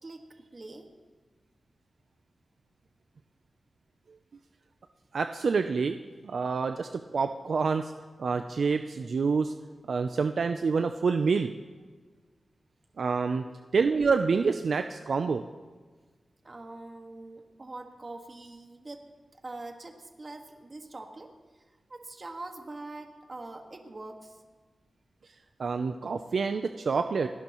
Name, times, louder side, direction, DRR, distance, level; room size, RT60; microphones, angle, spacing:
voice 1, 0.5-0.9 16.4-24.4, right 2 dB, 35° right, 4 dB, 1.6 m, -44 dB
voice 2, 5.1-6.0 6.2-7.9 8.2-9.5 9.9-11.5 13.0-13.4 13.7-15.4 25.6-27.3, right 5 dB, 70° right, 7 dB, 0.5 m, -27 dB
29.0 x 11.5 x 3.0 m, 1.4 s
wide cardioid pair, 100°, 0 cm